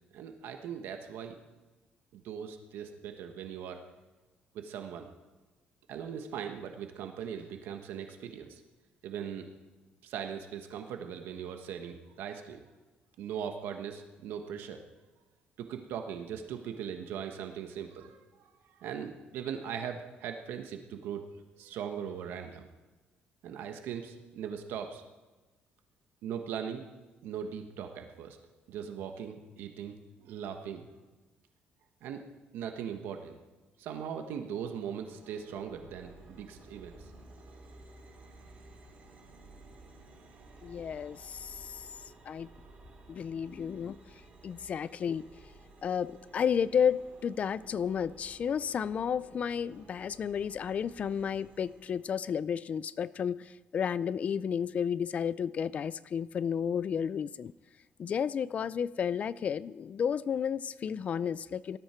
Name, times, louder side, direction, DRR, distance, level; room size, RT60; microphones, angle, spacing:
voice 1, 0.1-1.3 2.1-3.8 4.5-5.1 5.9-8.6 9.0-9.5 10.0-12.6 13.2-14.8 15.6-18.5 18.8-21.3 21.6-22.7 23.4-25.0 26.2-26.8 27.2-28.4 28.7-30.9 32.0-32.2 32.5-33.4 33.8-37.0, right 8 dB, 85° right, 5 dB, 1.3 m, -39 dB
sound 1, 34.8-52.2, right 2 dB, 45° right, 3.3 m, -55 dB
voice 2, 40.6-41.9 42.2-42.5 43.1-44.0 44.4-45.2 45.8-57.5 58.0-61.8, left 7 dB, 40° left, 18 dB, 0.4 m, -32 dB
18.5 x 13.0 x 4.5 m, 1.2 s
cardioid pair, 140°, 4 cm